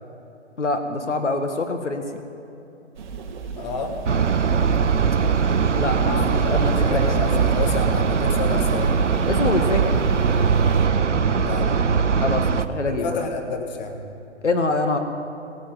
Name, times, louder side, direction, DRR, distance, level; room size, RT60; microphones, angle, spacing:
voice 1, 0.6-2.2 5.7-7.6 8.5-8.6 9.3-9.9 12.2-13.2 14.4-15.0, left 2 dB, 75° left, 6 dB, 1.5 m, -25 dB
sound 1, 2.9-10.9, right 5 dB, 40° right, 1.3 m, -32 dB
voice 2, 3.6-3.9 6.0-9.0 11.4-11.8 12.8-14.0, left 4 dB, 40° left, 4 dB, 1.6 m, -30 dB
sound 2, 4.1-12.7, right 6 dB, 85° right, 0.7 m, -20 dB
17.5 x 9.1 x 7.9 m, 2.8 s
figure-of-eight pair, 135°, 35 cm